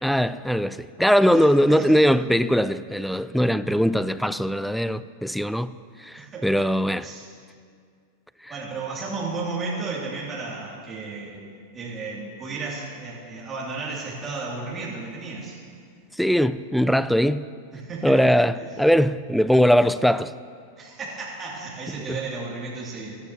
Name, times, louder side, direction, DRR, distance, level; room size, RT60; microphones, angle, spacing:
voice 1, 0.0-5.7 6.0-7.1 8.4-8.5 16.1-17.5 18.0-20.3 22.1-22.2, equal, ahead, 15 dB, 0.3 m, -21 dB
voice 2, 1.3-2.0 6.1-6.7 7.0-7.3 8.5-11.5 11.7-15.6 17.7-18.2 20.8-23.2, right 3 dB, 30° right, -5 dB, 2.7 m, -33 dB
16.5 x 11.5 x 2.9 m, 2.2 s
hypercardioid pair, 105°, 0 cm